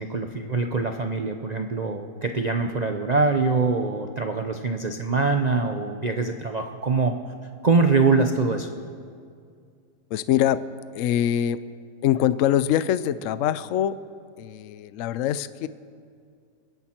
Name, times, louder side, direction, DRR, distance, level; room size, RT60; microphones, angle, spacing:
voice 1, 0.0-7.1 7.6-8.7, right 4 dB, 70° right, 5 dB, 0.4 m, -23 dB
voice 2, 10.1-10.6 10.9-11.6 12.0-14.0 14.4-15.7, left 11 dB, 70° left, 15 dB, 0.7 m, -23 dB
29.0 x 10.5 x 4.4 m, 2.3 s
omnidirectional pair, 1.9 m